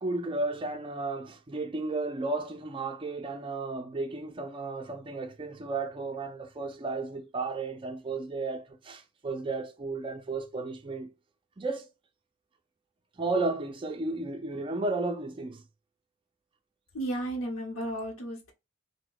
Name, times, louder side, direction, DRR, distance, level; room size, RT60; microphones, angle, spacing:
voice 1, 0.0-11.1 11.6-11.9 13.2-15.6, right 3 dB, 25° right, 0.4 m, -33 dB
voice 2, 16.9-18.5, right 1 dB, 65° left, 0.8 m, -33 dB
2.7 x 2.1 x 3.8 m
head